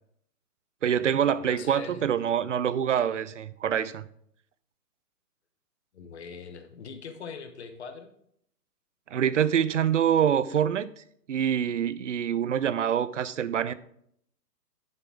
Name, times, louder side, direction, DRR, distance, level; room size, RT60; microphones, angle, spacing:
voice 1, 0.8-4.0 9.1-10.9 11.3-13.7, right 9 dB, 50° right, 0.5 m, -25 dB
voice 2, 1.4-2.1 5.9-8.1, left 6 dB, 45° left, 1.2 m, -42 dB
9.8 x 7.0 x 3.5 m
hypercardioid pair, 165°, 48 cm